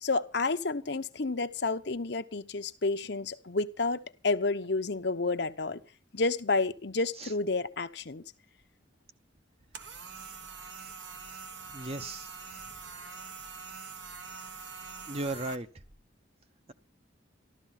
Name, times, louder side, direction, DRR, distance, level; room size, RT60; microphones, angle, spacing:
voice 1, 0.0-5.8 6.1-8.2, left 3 dB, 60° left, 0.9 m, -30 dB
sound 1, 9.7-15.5, right 5 dB, 65° right, 1.5 m, -44 dB
voice 2, 11.7-12.3 15.1-15.7, right 2 dB, 30° right, 0.9 m, -35 dB
14.0 x 12.5 x 5.9 m
head